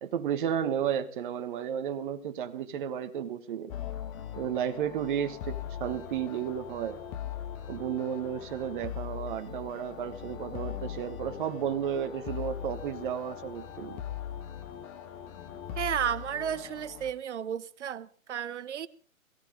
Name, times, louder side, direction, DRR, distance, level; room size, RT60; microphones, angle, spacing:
voice 1, 0.0-3.7 4.4-7.0 7.7-14.0, right 9 dB, 40° right, 9 dB, 1.5 m, -33 dB
sound 1, 3.7-17.1, left 10 dB, 25° left, 1.3 m, -40 dB
voice 2, 15.8-18.9, right 9 dB, 55° right, 15 dB, 1.1 m, -33 dB
22.0 x 15.5 x 3.7 m, 0.44 s
hypercardioid pair, 140°, 41 cm